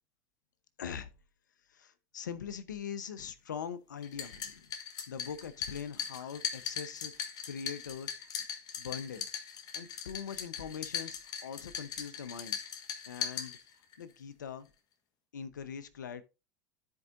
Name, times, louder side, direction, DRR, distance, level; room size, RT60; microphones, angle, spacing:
voice 1, 0.8-1.1 1.7-4.7 5.1-8.3 8.8-9.3 9.7-12.6 13.0-13.6 14.0-14.7 15.3-16.2, left 7 dB, 85° left, 0.8 m, -42 dB
sound 1, 4.0-14.0, left 7 dB, 45° left, 1.4 m, -40 dB
13.0 x 4.7 x 2.6 m
hypercardioid pair, 85°, 10 cm